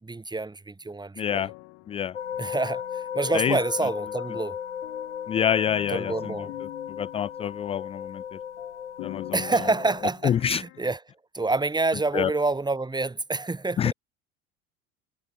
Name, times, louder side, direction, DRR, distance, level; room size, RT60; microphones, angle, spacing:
voice 1, 0.0-1.5 2.4-4.6 5.9-6.5 9.3-11.0 11.3-13.9, right 3 dB, 10° right, 4.6 m, -27 dB
sound 1, 1.2-2.6 2.9-7.8 8.1-8.2 8.6-11.0, left 26 dB, 55° left, 8.0 m, -44 dB
voice 2, 1.2-1.5 1.9-2.2 3.3-3.6 5.3-6.4 6.9-8.4 9.0-9.4 10.2-10.6 12.1-12.3 13.8-13.9, left 9 dB, 20° left, 0.4 m, -26 dB
sound 2, 2.1-10.0, left 8 dB, 90° left, 0.8 m, -36 dB
figure-of-eight pair, 70°, 34 cm